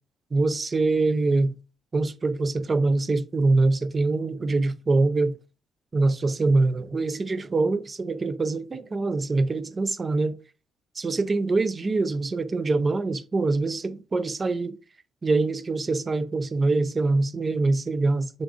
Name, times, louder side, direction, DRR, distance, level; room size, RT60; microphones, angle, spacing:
voice 1, 0.3-1.5 1.9-5.4 5.9-10.4 11.0-14.8 15.2-18.4, right 3 dB, 30° right, 0.4 m, -24 dB
3.7 x 2.4 x 3.6 m
cardioid pair, 90°, 0 cm